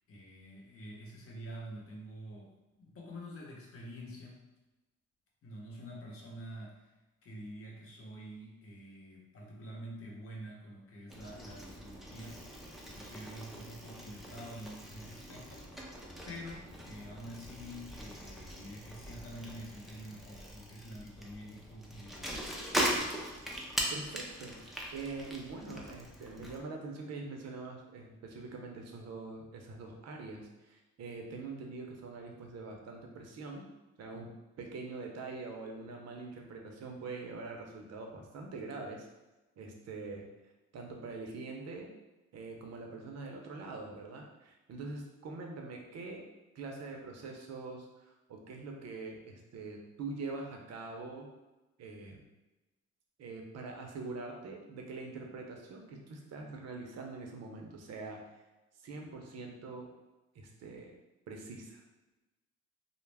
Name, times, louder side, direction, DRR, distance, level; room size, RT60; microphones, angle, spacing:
voice 1, 0.1-2.5 2.8-4.4 5.4-6.9 7.2-12.4 12.8-15.9 16.3-22.3, equal, 50° left, -2 dB, 0.8 m, -47 dB
Bicycle, 11.1-26.6, equal, ahead, 0.4 m, -40 dB
voice 2, 23.9-33.6 34.0-34.3 34.6-39.1 39.6-40.2 40.7-41.9 42.3-46.2 46.5-51.3 51.8-52.2 53.2-58.2 58.8-59.9 60.3-61.0 61.3-61.8, right 3 dB, 60° right, 1 dB, 0.6 m, -44 dB
2.2 x 2.0 x 3.3 m, 1.1 s
cardioid pair, 90°, 30 cm